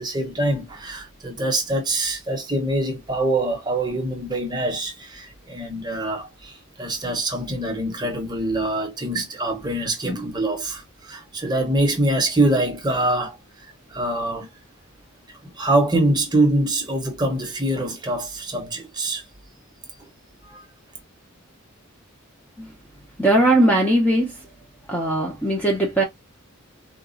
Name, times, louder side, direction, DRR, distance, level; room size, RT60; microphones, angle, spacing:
voice 1, 0.0-13.4 13.9-14.5 15.4-19.2 20.5-20.6, right 1 dB, 20° right, 0.9 m, -24 dB
voice 2, 23.2-24.4 24.9-26.0, right 1 dB, 5° left, 0.6 m, -19 dB
3.9 x 2.4 x 2.5 m
head